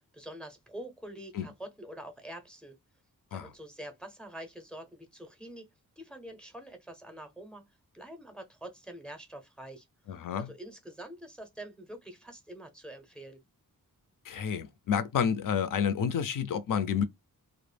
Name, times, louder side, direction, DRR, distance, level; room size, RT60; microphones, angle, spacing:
voice 1, 0.1-2.8 3.3-5.7 6.0-7.7 7.9-9.9 10.3-13.4, right 1 dB, ahead, 0.5 m, -45 dB
voice 2, 10.1-10.5 14.3-17.0, left 7 dB, 65° left, 0.5 m, -29 dB
2.1 x 2.0 x 3.2 m
wide cardioid pair, 150°, 34 cm